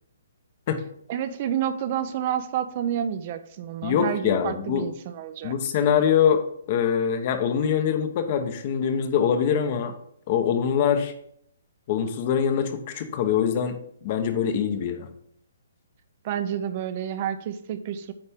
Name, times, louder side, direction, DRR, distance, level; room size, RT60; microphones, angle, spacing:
voice 1, 1.1-5.5 16.2-18.1, right 9 dB, 40° right, 11 dB, 0.5 m, -29 dB
voice 2, 3.8-4.9 5.4-9.9 10.3-11.1 11.9-15.1, left 8 dB, 40° left, 9 dB, 0.9 m, -24 dB
8.8 x 4.3 x 3.6 m, 0.67 s
hypercardioid pair, 155°, 0 cm